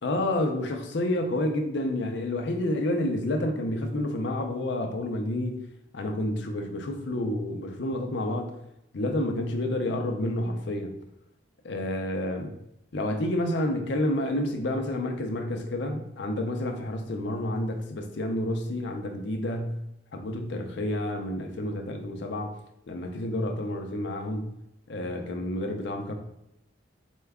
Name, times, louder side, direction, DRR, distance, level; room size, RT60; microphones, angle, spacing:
voice 1, 0.0-5.7 5.9-8.5 8.9-11.0 11.6-12.6 12.9-19.8 20.1-22.5 22.9-24.5 24.9-26.1, left 1 dB, 60° left, 5 dB, 0.5 m, -29 dB
4.4 x 2.3 x 3.4 m, 0.81 s
head